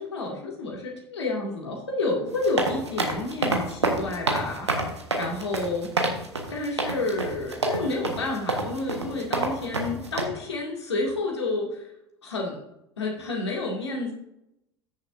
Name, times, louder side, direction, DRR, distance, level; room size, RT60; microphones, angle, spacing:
voice 1, 0.0-4.7 5.2-5.9 6.5-11.9 12.2-12.6 13.0-14.1, left 2 dB, 80° left, -1 dB, 2.4 m, -30 dB
sound 1, 2.3-10.2, right 2 dB, 85° right, 1.4 m, -27 dB
14.5 x 6.7 x 2.7 m, 0.83 s
figure-of-eight pair, 70°, 14 cm